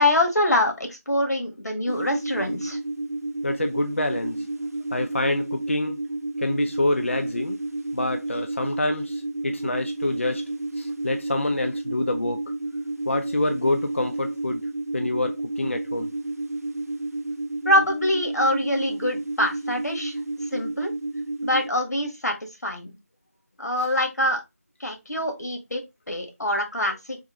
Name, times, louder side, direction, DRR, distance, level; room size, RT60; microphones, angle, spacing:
voice 1, 0.0-2.8 17.6-20.1 20.5-20.9 21.4-22.3 22.6-22.9 23.6-24.4 24.8-25.8 26.1-27.2, left 1 dB, 90° left, 1.4 m, -24 dB
sound 1, 1.9-21.7, right 2 dB, 70° right, 0.4 m, -31 dB
voice 2, 3.4-4.5 4.9-6.0 6.4-7.6 7.9-10.4 10.8-12.4 13.1-14.6 14.9-16.1 23.8-23.9, left 1 dB, 50° left, 0.3 m, -26 dB
3.6 x 2.9 x 2.9 m
figure-of-eight pair, 180°, 9 cm